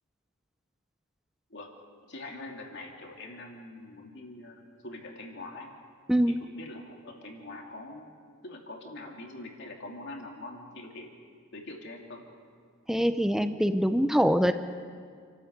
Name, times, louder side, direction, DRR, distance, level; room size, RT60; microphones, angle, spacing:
voice 1, 2.1-5.7 6.4-8.1 8.4-11.1 11.5-12.2, left 2 dB, 55° left, 1 dB, 2.8 m, -43 dB
voice 2, 12.9-14.5, equal, ahead, 9 dB, 0.6 m, -24 dB
28.5 x 12.5 x 8.1 m, 2.1 s
head